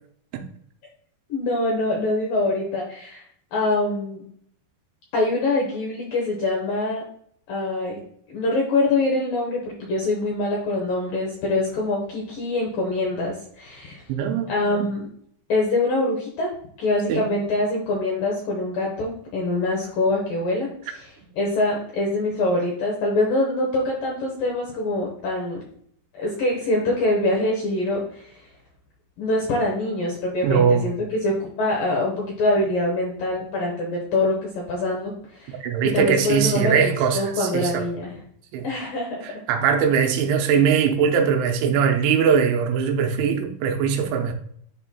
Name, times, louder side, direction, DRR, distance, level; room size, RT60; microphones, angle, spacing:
voice 1, 1.3-3.2 3.5-4.2 5.1-7.0 7.5-8.0 8.3-14.0 14.5-15.1 15.5-16.5 16.8-21.1 21.4-25.6 26.1-28.5 29.2-30.9 31.2-35.6 35.9-38.2 38.6-39.3, left 2 dB, 75° left, 2.0 m, -24 dB
voice 2, 14.1-14.9 17.1-17.3 30.4-30.9 35.5-37.9 38.5-38.7 39.2-44.3, right 7 dB, 85° right, 3.1 m, -21 dB
10.5 x 4.3 x 2.2 m
omnidirectional pair, 5.3 m